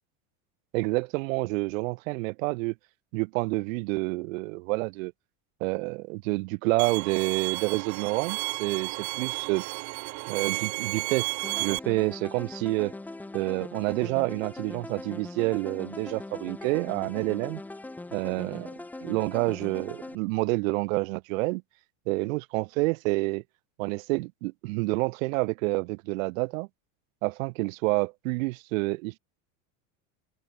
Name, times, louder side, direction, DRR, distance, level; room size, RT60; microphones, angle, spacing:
voice 1, 0.7-2.7 3.1-5.1 5.6-9.6 10.3-11.3 11.6-12.9 13.3-17.6 18.1-18.7 19.0-21.6 22.1-23.4 23.8-26.7 27.2-29.2, right 25 dB, 85° right, 0.8 m, -28 dB
Bowed string instrument, 6.8-11.8, right 25 dB, 45° right, 3.2 m, -32 dB
sound 1, 11.4-20.1, left 2 dB, 5° left, 1.1 m, -41 dB
cardioid pair, 180°, 39 cm